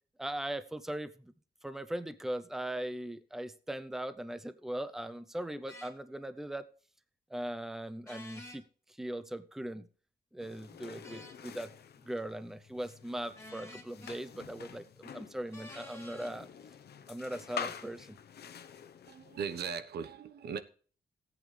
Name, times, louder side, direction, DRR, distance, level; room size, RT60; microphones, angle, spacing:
voice 1, 0.2-1.3 1.6-6.7 7.3-8.6 8.9-9.9 10.3-11.7 12.0-16.5 17.1-18.2, right 1 dB, ahead, 0.6 m, -39 dB
sound 1, 5.7-5.9 8.0-8.6 11.0-11.4 13.3-14.2 15.5-16.3, left 2 dB, 15° left, 3.1 m, -49 dB
sound 2, 10.4-19.8, left 7 dB, 85° left, 1.0 m, -47 dB
voice 2, 19.1-20.6, right 6 dB, 85° right, 1.2 m, -38 dB
17.5 x 8.5 x 3.4 m
wide cardioid pair, 150°, 16 cm